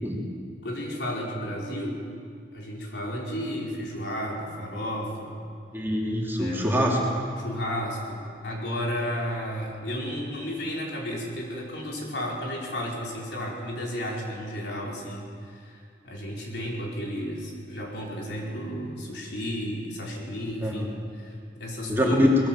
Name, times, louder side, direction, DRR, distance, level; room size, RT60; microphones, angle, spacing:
voice 1, 0.6-2.0 2.5-5.4 6.4-6.7 7.4-22.2, equal, 70° left, -3 dB, 4.5 m, -33 dB
voice 2, 5.7-7.0 20.6-20.9 21.9-22.5, left 1 dB, 15° right, -3 dB, 3.1 m, -24 dB
21.0 x 17.5 x 7.6 m, 2.3 s
head